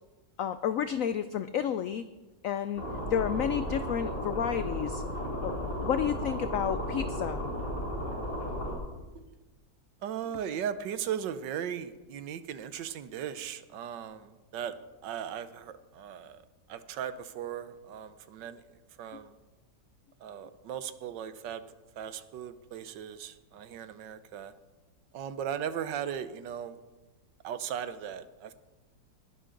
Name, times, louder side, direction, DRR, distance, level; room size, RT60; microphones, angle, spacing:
voice 1, 0.4-2.0 2.4-2.8 3.1-5.0 5.4-7.4 19.1-19.2, left 9 dB, 80° left, 11 dB, 0.7 m, -31 dB
sound 1, 2.8-8.8, equal, 60° left, 5.0 m, -34 dB
voice 2, 10.0-14.7 15.0-16.4 16.7-18.6 19.0-19.3 20.2-21.6 22.0-24.5 25.1-26.8 27.4-28.5, right 9 dB, 75° right, 12 dB, 1.4 m, -37 dB
20.5 x 11.0 x 3.9 m, 1.1 s
omnidirectional pair, 2.0 m